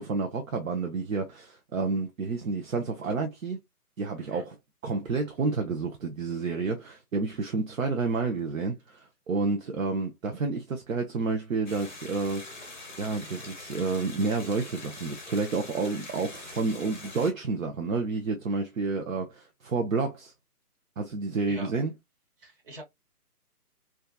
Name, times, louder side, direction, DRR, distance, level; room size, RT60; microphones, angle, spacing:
voice 1, 0.0-3.6 4.0-4.5 4.8-20.3 21.0-21.9, right 4 dB, 60° right, 0.6 m, -30 dB
sound 1, 11.7-17.3, left 2 dB, 30° left, 0.6 m, -44 dB
voice 2, 22.4-22.8, right 1 dB, 35° right, 1.2 m, -44 dB
2.7 x 2.4 x 2.3 m
hypercardioid pair, 170°, 46 cm